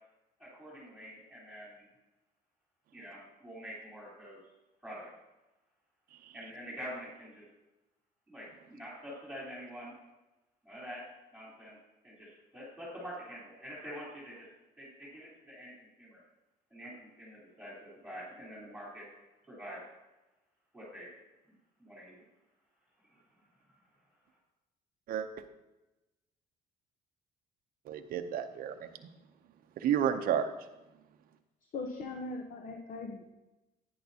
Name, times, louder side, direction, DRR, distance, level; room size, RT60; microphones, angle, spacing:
voice 1, 0.4-1.9 2.9-4.4 4.8-5.1 6.3-7.5 8.3-9.9 10.6-11.0 11.3-11.8 12.0-14.5 14.8-16.2 16.7-19.1 19.5-19.8 20.7-21.1 21.8-22.2, equal, 5° right, -7 dB, 3.6 m, -46 dB
voice 2, 27.9-28.9 29.8-30.5, right 9 dB, 60° right, 6 dB, 0.6 m, -31 dB
voice 3, 31.7-33.3, left 3 dB, 55° left, 3 dB, 0.9 m, -40 dB
10.0 x 9.4 x 2.8 m, 1.0 s
cardioid pair, 110°, 17 cm